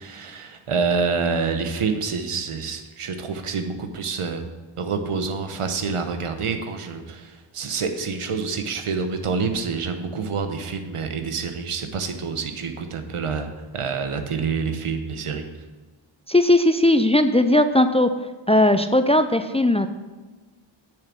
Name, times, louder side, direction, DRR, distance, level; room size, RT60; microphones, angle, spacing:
voice 1, 0.0-4.5 4.8-13.5 13.7-15.4, right 5 dB, 85° right, 7 dB, 1.0 m, -27 dB
voice 2, 16.3-18.1 18.5-19.9, left 1 dB, 15° left, 9 dB, 0.3 m, -18 dB
6.9 x 6.6 x 6.3 m, 1.3 s
wide cardioid pair, 75°, 50 cm